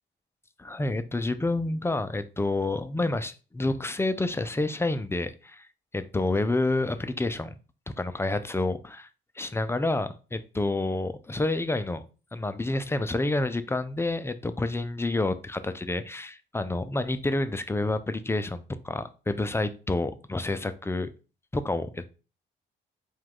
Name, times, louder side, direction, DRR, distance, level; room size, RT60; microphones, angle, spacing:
voice 1, 0.6-5.7 5.9-7.6 8.0-9.1 9.4-12.0 12.3-21.1 21.5-22.1, left 2 dB, 10° left, 0.3 m, -29 dB
4.7 x 2.3 x 3.7 m
cardioid pair, 90°, 20 cm